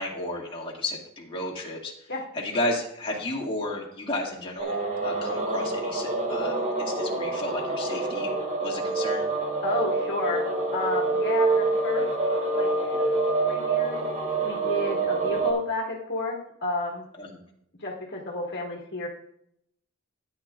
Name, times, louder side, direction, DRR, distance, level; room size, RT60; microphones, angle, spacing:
voice 1, 0.0-1.9 2.3-4.8 5.0-8.3 8.6-9.2 17.2-17.3, left 1 dB, 25° left, -3 dB, 2.0 m, -32 dB
sound 1, 4.6-15.5, right 3 dB, 35° right, 2.7 m, -26 dB
voice 2, 9.6-10.4 10.7-12.1 12.3-14.0 14.4-17.0 17.8-19.1, left 2 dB, 55° left, -2 dB, 1.8 m, -31 dB
15.0 x 9.6 x 2.4 m, 0.72 s
head